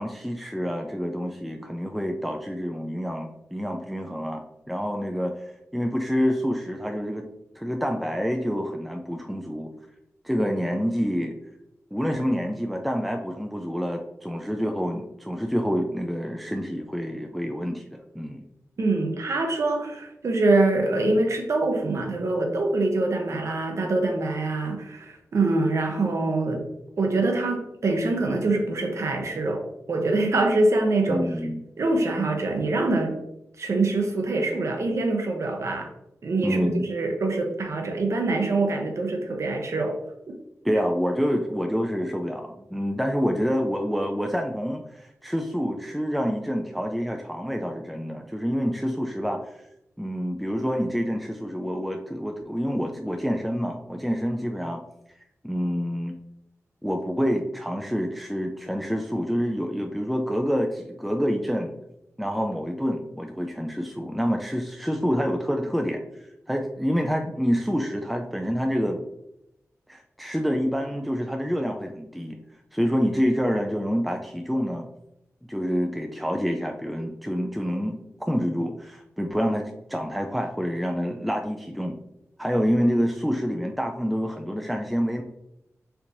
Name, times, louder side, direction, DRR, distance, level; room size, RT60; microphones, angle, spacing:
voice 1, 0.0-5.3 5.7-7.2 7.6-9.7 10.2-11.4 11.9-18.4 31.1-31.6 36.4-36.9 40.6-49.5 50.0-54.8 55.4-56.1 56.8-61.7 62.2-66.0 66.5-69.0 69.9-72.4 72.7-74.9 75.5-78.0 78.3-82.0 82.4-85.2, equal, ahead, 3 dB, 0.3 m, -27 dB
voice 2, 18.8-26.6 27.0-31.3 31.8-33.1 33.6-35.9 36.2-40.0, right 2 dB, 65° right, 3 dB, 0.7 m, -24 dB
4.4 x 2.8 x 2.6 m, 0.84 s
wide cardioid pair, 80°, 5 cm